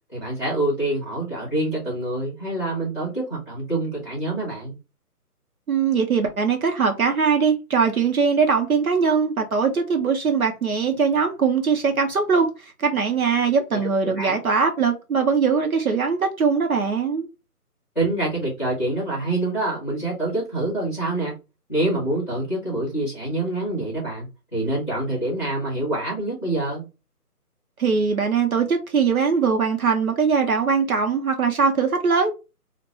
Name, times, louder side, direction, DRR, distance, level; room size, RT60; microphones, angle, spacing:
voice 1, 0.1-4.8 13.7-14.4 17.9-21.3 21.7-26.8, right 2 dB, ahead, 1.0 m, -26 dB
voice 2, 5.7-17.3 27.8-32.3, right 5 dB, 65° right, 0.8 m, -21 dB
3.8 x 2.2 x 3.0 m
figure-of-eight pair, 165°, 47 cm